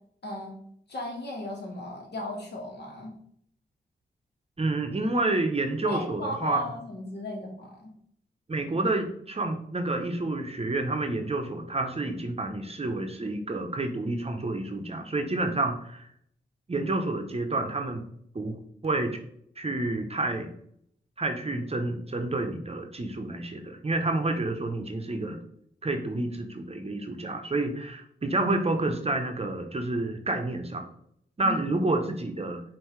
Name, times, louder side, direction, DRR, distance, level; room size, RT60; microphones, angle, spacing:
voice 1, 0.2-0.6 0.9-3.1 5.8-7.9 31.4-31.6, left 1 dB, 60° left, 0 dB, 1.4 m, -36 dB
voice 2, 4.6-6.6 8.5-16.1 16.7-18.0 18.3-18.6 18.8-19.2 19.6-20.5 21.2-25.4 25.8-30.8 31.4-32.6, right 2 dB, 30° right, 5 dB, 0.7 m, -29 dB
5.3 x 2.7 x 3.1 m, 0.67 s
cardioid pair, 45°, 19 cm